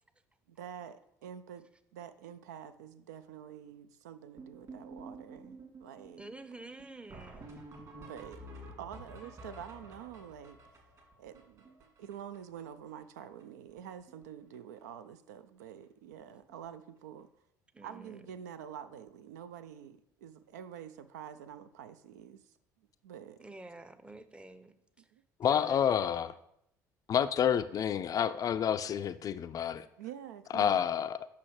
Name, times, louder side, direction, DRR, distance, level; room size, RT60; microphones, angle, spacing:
voice 1, 0.5-1.7 1.9-6.3 8.0-8.5 8.8-10.6 11.2-17.3 17.8-22.5 23.0-23.4 25.1-25.2 30.0-30.9, right 9 dB, 75° right, 0.4 m, -47 dB
sound 1, 4.4-12.6 12.9-13.0 13.2-13.4 13.7-14.2 14.5-14.8 15.6-15.7 16.1-16.2 16.5-16.7 18.9-19.0 21.3-21.4, right 2 dB, 40° right, 2.3 m, -50 dB
voice 2, 6.2-7.5 17.7-18.3 23.4-25.1 25.5-26.0, right 2 dB, 10° right, 0.6 m, -49 dB
voice 3, 25.4-26.3 27.1-29.9 30.5-31.3, left 9 dB, 40° left, 0.4 m, -29 dB
8.3 x 5.7 x 3.1 m
figure-of-eight pair, 55°, 9 cm